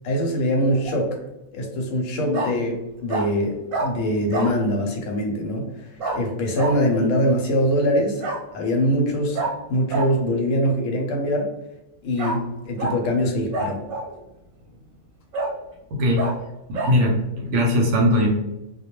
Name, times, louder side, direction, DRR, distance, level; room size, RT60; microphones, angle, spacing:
voice 1, 0.0-1.2 1.5-8.2 8.5-11.5 12.0-13.8, equal, 70° left, 2 dB, 0.9 m, -23 dB
Bark, 0.6-1.0 2.3-2.5 3.1-3.3 3.7-3.9 4.3-4.5 6.0-6.2 6.5-6.7 8.2-8.4 9.3-9.5 9.9-10.1 12.2-12.4 12.8-13.0 13.5-14.1 14.7-14.8 15.3-15.5 16.2-16.3 16.7-16.9, right 2 dB, 85° right, 1.1 m, -27 dB
voice 2, 15.9-16.3 16.7-18.3, left 1 dB, 70° right, 0 dB, 0.8 m, -20 dB
2.2 x 2.2 x 2.9 m, 0.94 s
omnidirectional pair, 1.4 m